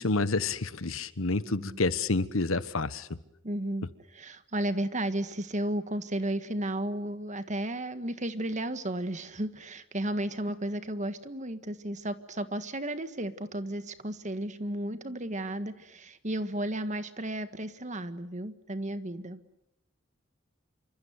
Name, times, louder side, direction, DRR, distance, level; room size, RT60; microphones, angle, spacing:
voice 1, 0.0-3.1, left 3 dB, 80° left, 1.3 m, -29 dB
voice 2, 3.4-3.9 4.1-19.4, right 1 dB, 35° right, 1.7 m, -33 dB
27.5 x 25.0 x 8.1 m
head